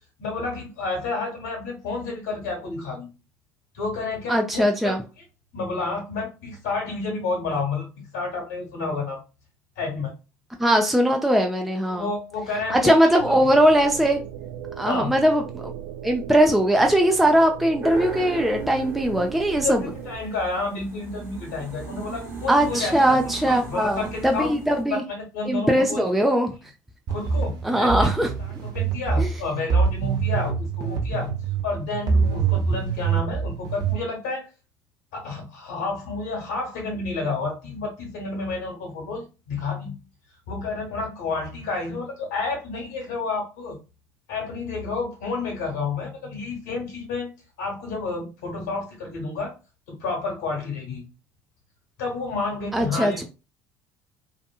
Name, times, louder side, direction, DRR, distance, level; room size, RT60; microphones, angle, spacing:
voice 1, 0.2-3.1 3.7-4.9 5.5-9.2 9.7-10.1 11.9-13.4 14.8-15.1 19.5-24.5 24.9-26.2 27.1-28.1 28.4-31.3 31.6-34.5 35.1-40.0 40.5-43.8 44.3-47.3 47.6-49.5 49.9-51.0 52.0-53.2, left 3 dB, 70° left, -2 dB, 1.2 m, -30 dB
voice 2, 4.3-5.0 10.6-12.1 12.7-14.2 14.8-15.6 16.0-19.8 22.5-25.0 25.5-26.5 27.6-28.3 29.2-29.3 52.7-53.2, equal, ahead, 2 dB, 0.4 m, -20 dB
sound 1, 13.2-20.2, right 10 dB, 65° right, 0.4 m, -37 dB
sound 2, 17.8-24.8, right 3 dB, 25° right, 1.1 m, -37 dB
sound 3, 27.1-33.9, right 5 dB, 50° right, 0.8 m, -25 dB
2.7 x 2.5 x 2.3 m, 0.30 s
hypercardioid pair, 60°, 9 cm